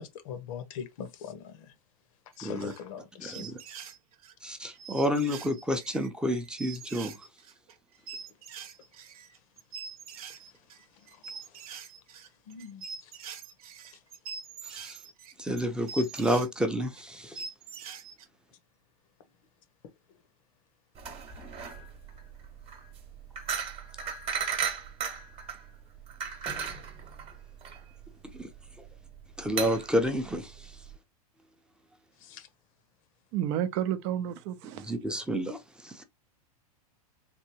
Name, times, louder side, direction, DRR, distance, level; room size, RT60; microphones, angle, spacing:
voice 1, 0.0-1.7 2.4-3.5 10.9-11.7 12.5-13.1 32.2-32.5, left 7 dB, 60° left, 0.8 m, -42 dB
sound 1, 2.3-3.0 3.3-4.3 4.7-16.5 17.0-17.1 17.3-18.2, right 5 dB, 70° right, 0.9 m, -44 dB
voice 2, 2.4-2.7 3.2-3.5 4.4-7.2 14.6-15.0 15.4-17.4 28.3-28.5 29.4-30.7 34.7-36.0, equal, 5° right, 0.6 m, -30 dB
sound 2, 21.0-30.9, right 7 dB, 30° right, 1.0 m, -36 dB
voice 3, 33.3-34.9, right 10 dB, 50° right, 0.5 m, -31 dB
3.5 x 2.6 x 2.8 m
hypercardioid pair, 110°, 20 cm